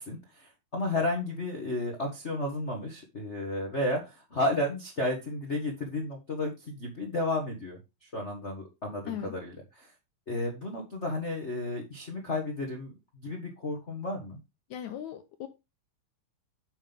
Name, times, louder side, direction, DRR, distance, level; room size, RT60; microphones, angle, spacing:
voice 1, 0.0-9.9 10.3-12.9 13.2-14.4, left 2 dB, 35° left, 1.1 m, -33 dB
voice 2, 14.7-15.5, left 10 dB, 75° left, 1.9 m, -38 dB
8.6 x 5.5 x 3.5 m
omnidirectional pair, 3.9 m